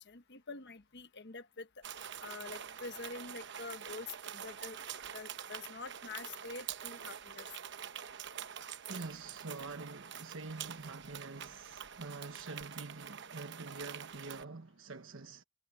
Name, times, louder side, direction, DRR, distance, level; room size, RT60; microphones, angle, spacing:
voice 1, 0.0-1.8 2.2-4.8 5.1-7.5, left 4 dB, 60° left, 1.2 m, -46 dB
sound 1, 1.8-14.4, right 8 dB, 65° right, 1.0 m, -46 dB
voice 2, 8.9-15.4, right 3 dB, 85° right, 1.2 m, -46 dB
head